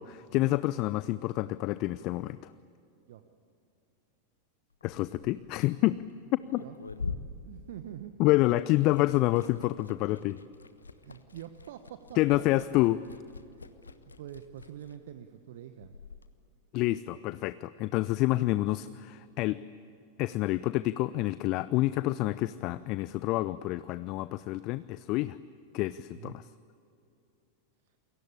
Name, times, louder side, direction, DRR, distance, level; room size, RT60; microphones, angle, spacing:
voice 1, 0.0-2.5 4.8-6.0 6.3-6.6 8.2-10.4 12.2-13.0 16.7-19.6 20.2-25.4 25.7-26.4, left 18 dB, 40° left, 16 dB, 0.5 m, -28 dB
Liquid, 4.7-8.4 8.7-16.3, left 4 dB, 75° left, 1.2 m, -45 dB
voice 2, 7.4-8.2 10.1-10.2 11.0-12.7 13.5-13.9 14.2-15.9 18.4-18.6 21.9-22.0 26.1-26.4, right 11 dB, 55° right, 9 dB, 1.1 m, -46 dB
28.5 x 23.0 x 8.7 m, 2.7 s
figure-of-eight pair, 90°, 0 cm